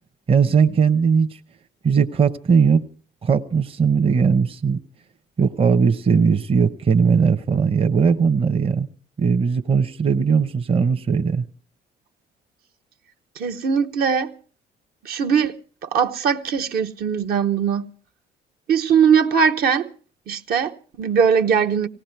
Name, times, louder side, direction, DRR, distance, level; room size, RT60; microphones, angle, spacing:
voice 1, 0.3-1.4 1.8-2.8 3.2-4.8 5.4-8.9 9.2-11.4, right 6 dB, 35° right, 0.8 m, -18 dB
voice 2, 13.4-14.3 15.0-15.6 15.8-17.9 18.7-19.9 20.3-21.9, right 7 dB, 65° right, 0.9 m, -20 dB
18.5 x 17.5 x 4.5 m
cardioid pair, 110°, 17 cm